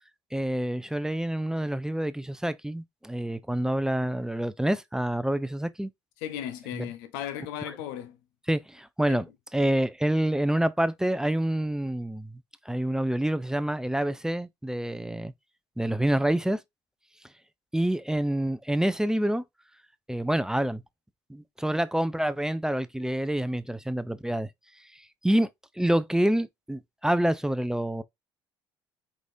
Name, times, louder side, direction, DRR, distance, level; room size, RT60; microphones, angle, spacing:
voice 1, 0.3-5.9 6.7-6.9 8.5-9.3 9.5-12.3 12.7-15.3 15.8-16.6 17.7-19.4 20.1-20.8 21.3-24.5 25.2-25.5 25.8-28.0, right 1 dB, 5° right, 0.5 m, -27 dB
voice 2, 6.2-8.2 9.1-9.2, left 10 dB, 80° left, 0.8 m, -36 dB
4.8 x 4.0 x 2.7 m
hypercardioid pair, 60°, 12 cm